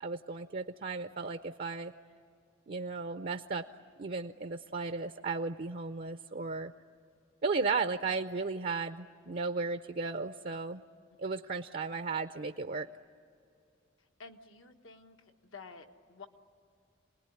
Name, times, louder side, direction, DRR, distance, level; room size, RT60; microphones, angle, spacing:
voice 1, 0.0-1.9 2.7-3.7 4.0-6.7 7.4-10.8 11.2-12.9, right 4 dB, 45° right, 10 dB, 0.5 m, -35 dB
voice 2, 14.0-16.3, left 4 dB, 80° left, 5 dB, 1.5 m, -52 dB
27.5 x 20.0 x 9.9 m, 2.5 s
head